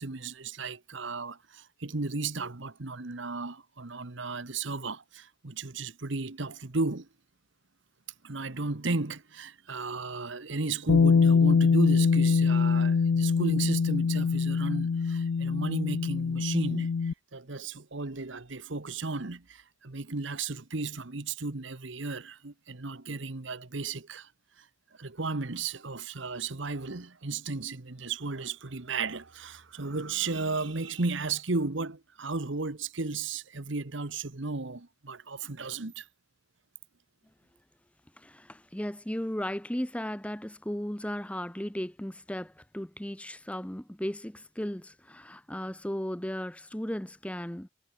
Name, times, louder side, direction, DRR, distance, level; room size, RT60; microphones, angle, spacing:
voice 1, 0.0-7.1 8.2-24.3 24.6-24.7 25.0-36.1, right 3 dB, 65° right, 1.3 m, -34 dB
Bass guitar, 10.9-17.1, left 5 dB, 80° left, 0.4 m, -24 dB
voice 2, 38.2-47.7, equal, 5° left, 0.9 m, -36 dB
head